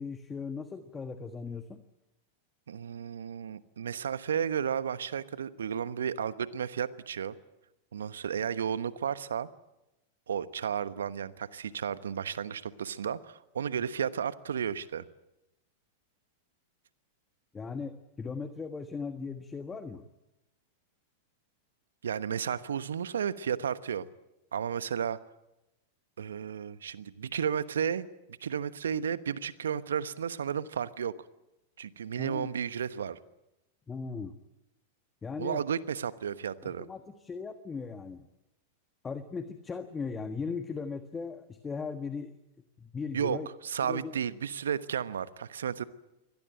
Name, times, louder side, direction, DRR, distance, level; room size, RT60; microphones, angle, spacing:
voice 1, 0.0-1.8 17.5-20.0 32.2-32.5 33.9-34.4 35.2-35.6 36.6-38.3 39.0-42.3 42.8-43.5 43.9-44.2, left 5 dB, 20° left, 9 dB, 1.5 m, -38 dB
voice 2, 2.7-7.4 7.9-9.5 10.3-15.0 22.0-24.1 24.5-25.2 26.2-31.1 31.8-33.2 35.4-36.9 43.1-43.4 43.6-45.8, right 8 dB, 75° right, 15 dB, 1.1 m, -33 dB
24.5 x 18.0 x 9.1 m, 0.95 s
figure-of-eight pair, 95°, 0 cm